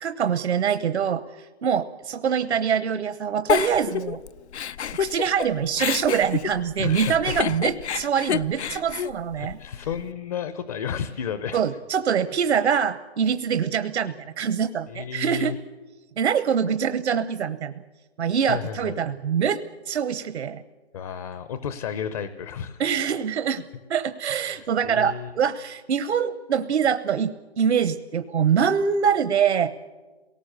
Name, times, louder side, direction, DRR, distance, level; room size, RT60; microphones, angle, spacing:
voice 1, 0.0-4.2 4.9-9.6 11.5-15.6 16.2-17.8 18.2-20.6 22.8-23.6 23.9-29.7, right 7 dB, 80° right, 10 dB, 0.9 m, -24 dB
Giggle, 3.5-5.5 5.8-10.0, left 8 dB, 80° left, 0.7 m, -28 dB
voice 2, 6.8-7.3 9.4-11.6 14.9-15.6 18.5-19.0 20.9-22.8 24.2-25.3, left 8 dB, 35° left, 12 dB, 0.7 m, -32 dB
27.0 x 18.5 x 6.7 m, 1.3 s
hypercardioid pair, 155°, 33 cm